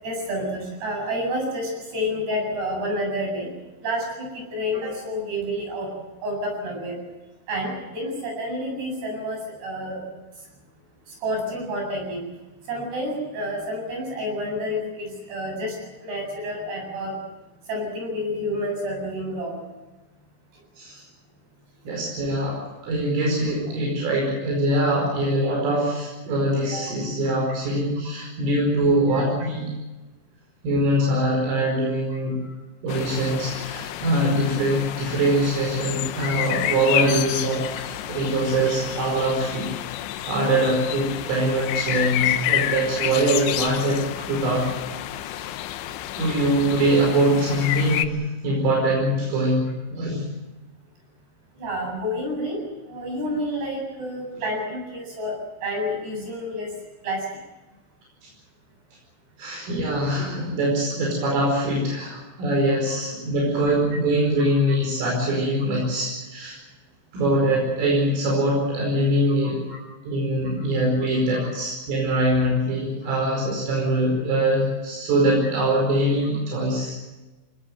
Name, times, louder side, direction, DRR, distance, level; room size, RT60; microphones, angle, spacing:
voice 1, 0.0-3.5 3.8-5.9 6.2-6.9 7.5-10.0 11.2-12.2 12.7-15.8 16.0-17.2 17.7-19.6 24.9-25.0 25.5-25.6 26.6-26.7 29.1-29.2 32.1-32.2 37.0-37.2 42.2-42.4 51.6-52.6 52.9-55.3 55.6-56.7 57.0-57.3 64.7-64.8 69.4-69.8 71.3-71.5 73.0-73.1, equal, 50° right, 1 dB, 9.6 m, -29 dB
voice 2, 21.9-29.7 30.6-32.4 32.8-39.7 40.3-44.7 45.2-45.5 46.2-50.3 54.3-54.5 59.4-66.6 67.1-69.6 70.0-77.1, right 1 dB, 75° right, -1 dB, 7.6 m, -23 dB
sound 1, 32.9-48.1, left 13 dB, 75° left, 2.8 m, -29 dB
25.0 x 19.0 x 7.9 m, 1.1 s
omnidirectional pair, 5.9 m